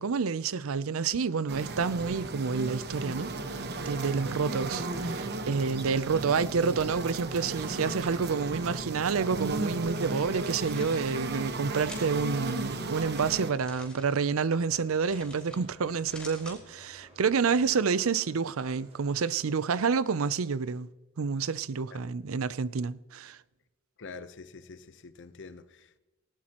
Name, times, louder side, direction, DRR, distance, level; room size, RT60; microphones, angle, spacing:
voice 1, 0.0-20.9 21.2-23.4, right 5 dB, 85° right, 0.5 m, -29 dB
sound 1, 1.5-13.5, right 2 dB, 55° right, 1.1 m, -35 dB
sound 2, 10.3-11.0 11.8-12.3 13.4-14.1 15.1-15.6 15.9-16.6, left 2 dB, 5° left, 4.8 m, -47 dB
sound 3, 12.8-19.6, right 1 dB, 35° right, 5.4 m, -57 dB
voice 2, 24.0-26.0, left 4 dB, 60° left, 0.9 m, -46 dB
19.0 x 17.0 x 3.0 m
head